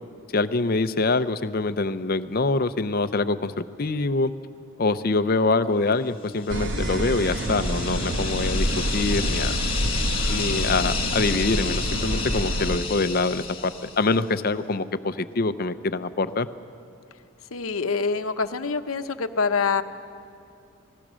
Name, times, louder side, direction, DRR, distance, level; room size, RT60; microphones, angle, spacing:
voice 1, 0.3-4.3 4.8-9.6 10.3-16.5, left 3 dB, 45° left, 12 dB, 0.6 m, -25 dB
sound 1, 6.4-14.2, left 5 dB, 25° left, 1.8 m, -32 dB
sound 2, 6.5-12.8, right 1 dB, 60° right, 1.4 m, -27 dB
voice 2, 17.5-19.8, left 5 dB, 90° left, 9 dB, 0.9 m, -25 dB
27.5 x 19.0 x 6.3 m, 2.5 s
head